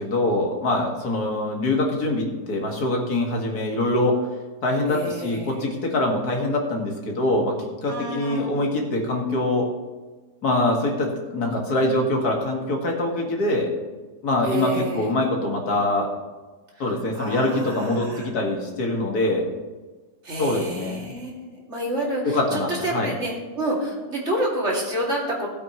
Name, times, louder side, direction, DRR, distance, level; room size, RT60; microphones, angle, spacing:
voice 1, 0.0-4.2 4.6-9.7 10.4-13.7 14.2-16.1 16.8-19.4 20.4-21.1 22.2-23.1, left 2 dB, 70° left, 0 dB, 2.4 m, -24 dB
voice 2, 4.9-5.6 7.9-8.6 14.4-15.1 16.7-18.3 20.2-25.5, right 1 dB, 45° right, -3 dB, 2.8 m, -29 dB
16.0 x 8.4 x 3.1 m, 1.3 s
omnidirectional pair, 1.7 m